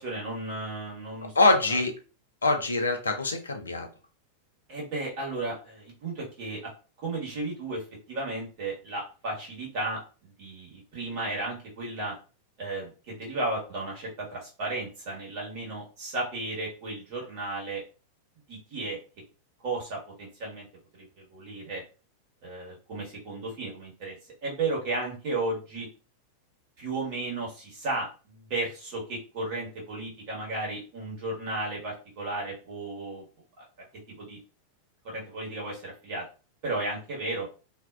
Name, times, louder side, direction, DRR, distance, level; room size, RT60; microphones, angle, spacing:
voice 1, 0.0-1.3 1.7-1.8 4.7-6.7 7.0-12.1 12.6-17.8 18.5-19.0 19.6-20.7 20.9-21.8 22.4-24.1 24.4-25.9 26.8-33.2 34.2-34.4 35.0-36.2 36.6-37.5, right 2 dB, 45° right, -3 dB, 1.3 m, -34 dB
voice 2, 1.3-2.0 2.4-3.9, left 2 dB, 75° left, 5 dB, 0.4 m, -24 dB
2.5 x 2.1 x 2.3 m, 0.34 s
figure-of-eight pair, 90°, 0 cm